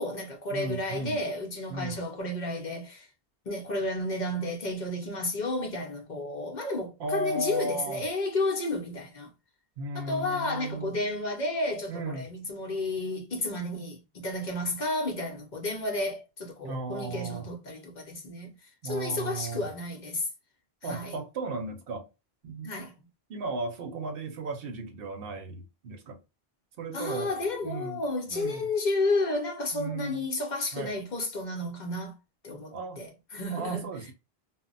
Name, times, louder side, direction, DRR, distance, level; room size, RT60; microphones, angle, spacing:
voice 1, 0.0-3.1 3.5-9.3 9.9-20.3 20.8-21.1 22.6-22.9 26.9-32.1 32.4-33.9, left 2 dB, 50° left, 0.7 m, -32 dB
voice 2, 0.5-1.2 1.7-2.0 7.0-8.0 9.8-10.9 11.9-12.3 16.6-17.5 18.8-19.7 20.8-22.1 22.4-22.7 23.3-26.2 26.8-27.3 27.6-28.0 28.3-28.7 29.7-30.2 30.7-30.9 32.7-33.0 33.5-34.1, right 3 dB, 65° right, 0.8 m, -35 dB
2.1 x 2.1 x 3.7 m
omnidirectional pair, 1.1 m